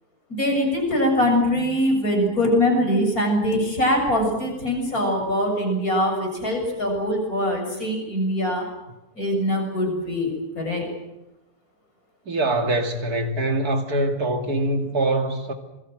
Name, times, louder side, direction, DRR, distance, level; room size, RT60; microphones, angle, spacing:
voice 1, 0.3-8.7 9.2-10.9, left 1 dB, 70° left, 7.7 m, -23 dB
voice 2, 12.3-15.5, right 2 dB, 80° right, 3.1 m, -23 dB
27.0 x 22.5 x 7.7 m
omnidirectional pair, 1.6 m